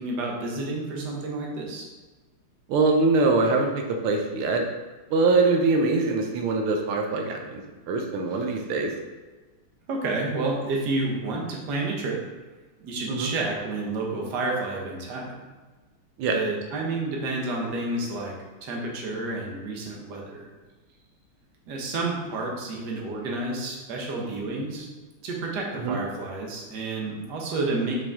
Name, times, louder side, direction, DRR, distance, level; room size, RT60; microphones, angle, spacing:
voice 1, 0.0-1.9 9.9-12.2 12.8-15.4 16.3-20.5 21.7-24.9 25.2-28.0, right 2 dB, 55° right, -1 dB, 1.6 m, -30 dB
voice 2, 2.7-4.6 5.1-8.9 13.1-13.3 16.2-16.4 25.8-26.0, right 3 dB, 90° right, 3 dB, 1.6 m, -23 dB
5.4 x 5.3 x 3.5 m, 1.3 s
omnidirectional pair, 2.3 m